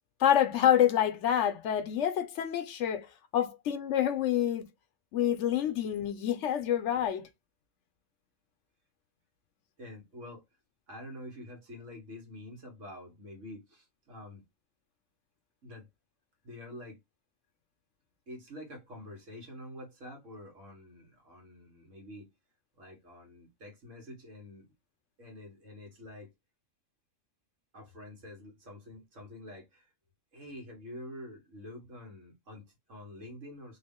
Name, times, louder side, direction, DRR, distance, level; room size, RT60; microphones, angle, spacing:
voice 1, 0.2-3.1 3.3-4.7 5.1-7.3, left 10 dB, 70° left, 0.9 m, -27 dB
voice 2, 9.8-10.4 10.9-14.4 15.6-15.9 16.4-17.0 18.3-22.3 22.8-24.7 25.2-26.3 27.7-29.9 30.3-33.8, left 1 dB, 75° right, 2.0 m, -47 dB
3.6 x 2.5 x 3.5 m
omnidirectional pair, 1.3 m